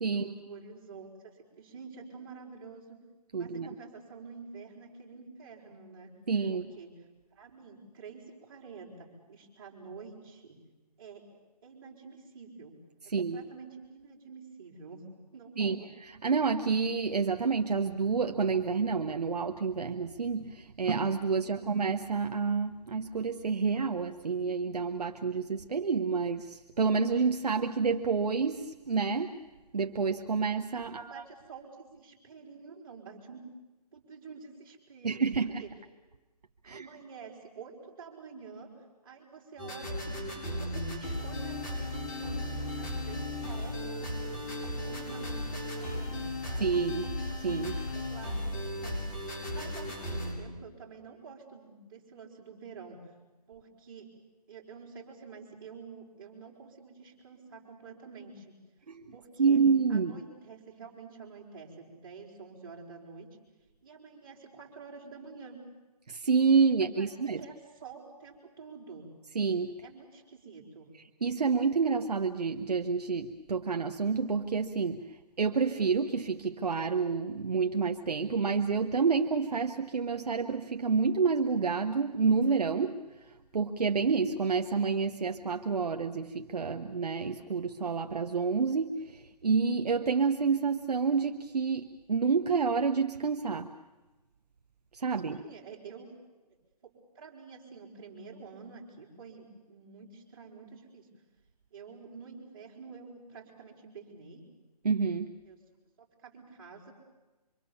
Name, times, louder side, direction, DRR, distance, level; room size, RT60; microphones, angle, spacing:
voice 1, 0.1-3.0 3.4-6.1 6.5-6.9 7.3-10.6 11.0-11.3 11.6-12.8 13.0-15.0 15.3-15.9 21.4-21.7 30.7-33.5 33.9-35.2 35.6-35.7 36.6-38.7 39.0-44.1 44.6-46.7 47.9-49.0 49.4-53.1 53.5-54.1 54.5-58.6 59.1-59.6 59.9-63.3 63.8-65.6 66.6-67.6 67.8-69.1 69.8-70.9 95.3-96.1 96.8-101.1 101.7-104.5 105.4-105.6 106.0-106.9, right 5 dB, 30° right, -2 dB, 5.3 m, -48 dB
voice 2, 3.3-3.7 6.3-6.7 13.1-13.4 15.6-15.8 16.2-29.4 29.7-31.2 35.0-35.6 36.6-36.9 46.6-47.1 47.4-47.8 58.9-59.1 59.4-60.1 66.1-67.4 69.3-69.7 71.2-93.7 94.9-95.4 104.8-105.4, right 5 dB, 70° right, 6 dB, 1.3 m, -29 dB
sound 1, 39.6-50.3, left 1 dB, 30° left, 6.8 m, -36 dB
25.5 x 24.5 x 7.2 m, 1.1 s
hypercardioid pair, 170°, 21 cm